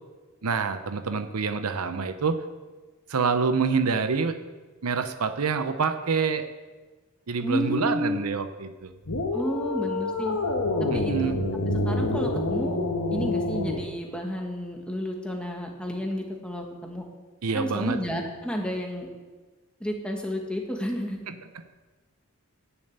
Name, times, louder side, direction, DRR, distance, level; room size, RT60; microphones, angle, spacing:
voice 1, 0.4-2.4 3.1-4.4 4.8-6.5 7.3-8.9 10.9-11.4 17.4-18.0 21.3-21.4, right 5 dB, 85° right, 9 dB, 0.7 m, -26 dB
voice 2, 7.4-8.2 9.3-10.4 10.8-11.3 11.8-12.8 13.1-17.0 17.5-19.1 19.8-21.2, equal, 5° left, 1 dB, 1.5 m, -31 dB
sound 1, 9.1-13.9, left 2 dB, 85° left, 1.3 m, -27 dB
10.5 x 7.0 x 8.0 m, 1.3 s
head